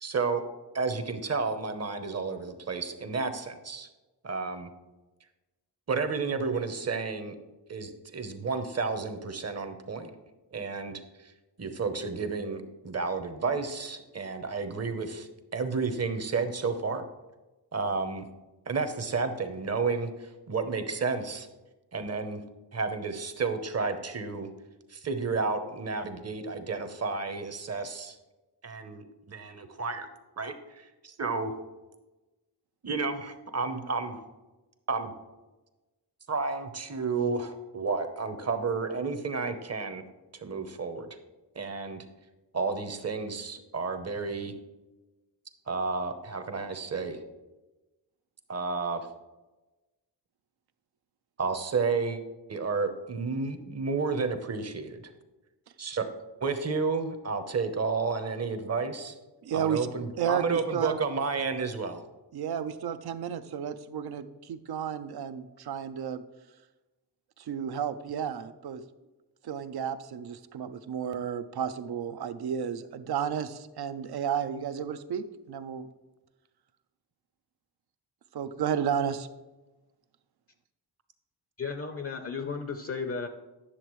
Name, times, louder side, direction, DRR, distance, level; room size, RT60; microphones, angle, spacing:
voice 1, 0.0-0.4 0.7-3.9 4.2-4.7 5.9-7.3 7.7-10.1 10.5-11.0 11.6-17.0 17.7-18.2 18.7-21.5 21.9-22.4 22.7-24.5 24.9-28.2 28.6-30.1 30.4-31.5 32.8-34.2 34.9-35.1 36.3-40.0 40.3-41.1 41.6-42.0 42.5-44.5 45.7-47.2 48.5-49.0 51.4-52.2 52.5-55.1 55.8-56.1 56.4-59.1 59.5-62.0, right 4 dB, 40° right, 8 dB, 0.8 m, -31 dB
voice 2, 59.4-59.9 60.2-61.0 62.3-66.2 67.4-68.8 69.4-75.9 78.3-79.3, right 8 dB, 65° right, 11 dB, 0.6 m, -32 dB
voice 3, 81.6-83.3, left 5 dB, 35° left, 7 dB, 0.6 m, -34 dB
9.9 x 6.7 x 3.1 m, 1.1 s
wide cardioid pair, 110°, 41 cm